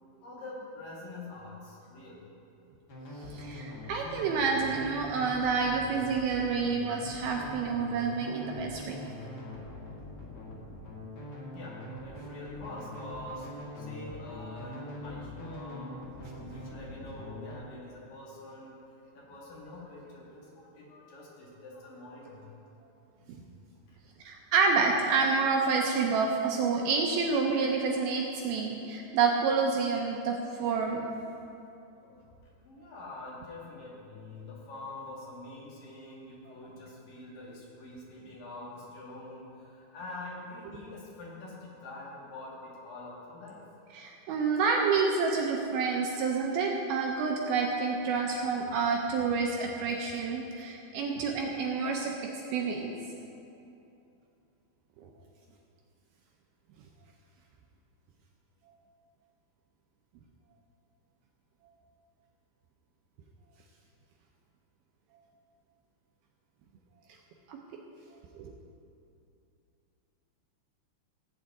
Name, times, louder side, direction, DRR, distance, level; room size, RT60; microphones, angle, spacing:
voice 1, 0.2-2.2 11.5-11.8 12.0-13.5 13.8-18.7 19.1-22.5 23.9-24.0 32.0-32.4 32.6-43.6, left 2 dB, 60° left, -5 dB, 3.2 m, -45 dB
sound 1, 2.9-17.5, left 1 dB, 75° left, 0.9 m, -43 dB
voice 2, 3.3-9.0 24.2-31.1 43.9-52.1 52.5-52.9 67.5-67.6 68.4-68.5, right 5 dB, 80° right, 0 dB, 2.3 m, -28 dB
17.0 x 8.6 x 3.6 m, 2.7 s
omnidirectional pair, 4.9 m